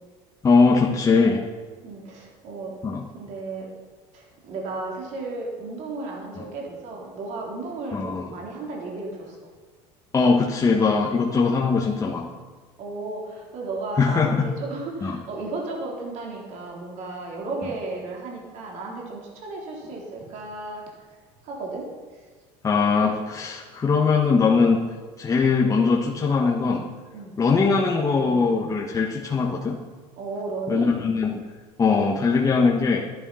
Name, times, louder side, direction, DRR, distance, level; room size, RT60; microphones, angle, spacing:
voice 1, 0.4-1.4 2.8-3.0 7.9-8.2 10.1-12.4 14.0-14.5 15.0-15.2 22.6-24.8 25.2-26.8 27.4-29.8 30.7-31.4 31.8-33.0, left 4 dB, 25° left, -2 dB, 1.3 m, -21 dB
voice 2, 1.8-2.7 3.1-3.7 4.1-9.5 12.8-20.8 21.1-21.8 27.1-27.4 30.2-31.0, right 3 dB, 55° right, -2 dB, 3.8 m, -34 dB
12.0 x 10.5 x 5.7 m, 1.4 s
supercardioid pair, 120°, 14 cm